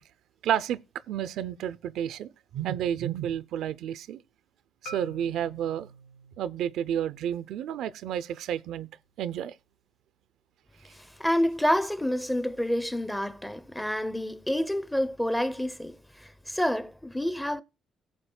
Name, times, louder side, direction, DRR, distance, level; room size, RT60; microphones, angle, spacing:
voice 1, 0.4-0.8 1.1-4.2 4.8-5.9 6.4-8.9 9.2-9.5, right 10 dB, 80° right, 0.4 m, -31 dB
Marimba xylophone, 4.9-9.0, right 1 dB, 90° left, 1.4 m, -49 dB
voice 2, 11.0-17.6, equal, 5° left, 0.7 m, -28 dB
16.5 x 7.5 x 2.2 m
cardioid pair, 90°, 0 cm